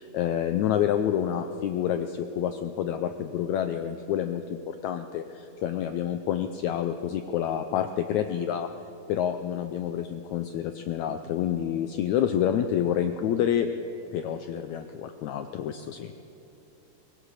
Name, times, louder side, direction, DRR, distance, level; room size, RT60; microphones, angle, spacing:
voice 1, 0.0-8.7 9.1-13.7 14.1-16.1, left 10 dB, 80° left, 8 dB, 1.7 m, -28 dB
23.0 x 18.0 x 6.6 m, 2.9 s
omnidirectional pair, 4.0 m